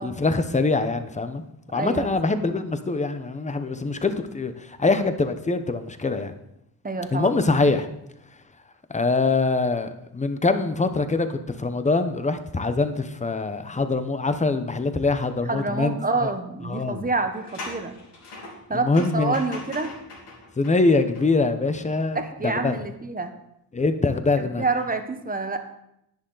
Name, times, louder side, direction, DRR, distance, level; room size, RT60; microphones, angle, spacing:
voice 1, 0.0-1.4 1.7-6.3 7.1-7.9 8.9-16.0 16.2-16.3 16.6-17.1 18.7-19.3 20.6-22.8 23.7-24.6, left 3 dB, 20° left, 9 dB, 0.7 m, -24 dB
voice 2, 1.7-2.1 6.8-7.3 15.5-17.9 18.7-18.9 19.1-19.9 22.1-23.3 24.6-25.6, right 3 dB, 20° right, 7 dB, 1.0 m, -27 dB
sound 1, 15.2-15.3 15.8-15.9 17.2-21.7 22.1-22.2, left 2 dB, 80° left, 3.2 m, -41 dB
10.5 x 10.0 x 3.9 m, 0.79 s
wide cardioid pair, 135°, 41 cm